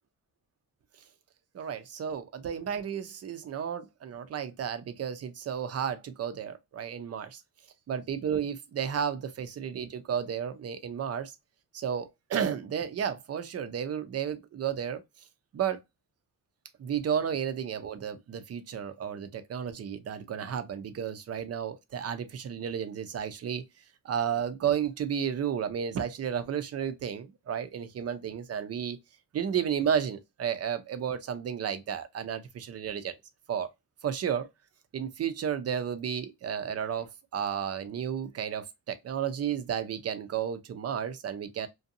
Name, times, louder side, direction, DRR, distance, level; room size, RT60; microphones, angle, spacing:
voice 1, 1.5-7.4 7.9-11.3 11.7-15.0 15.5-15.8 16.8-23.6 24.0-29.0 29.3-33.1 33.5-33.7 34.0-34.5 34.9-41.7, right 8 dB, 45° right, 0.5 m, -32 dB
2.6 x 2.2 x 2.5 m
cardioid pair, 85°, 34 cm